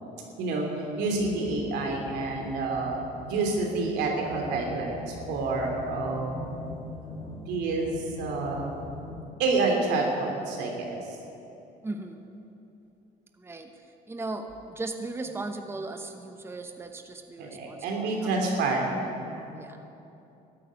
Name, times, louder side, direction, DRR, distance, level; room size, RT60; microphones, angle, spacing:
voice 1, 1.0-6.5 7.5-8.9 9.4-11.1 17.4-18.9 19.2-19.5, right 3 dB, 90° right, 0 dB, 3.1 m, -28 dB
sound 1, 1.1-9.2, left 2 dB, 35° left, 3.1 m, -42 dB
voice 2, 11.8-12.2 13.4-13.7 14.1-18.5 19.6-19.8, right 2 dB, 15° right, 6 dB, 1.0 m, -37 dB
14.5 x 9.3 x 9.2 m, 2.9 s
cardioid pair, 110°, 17 cm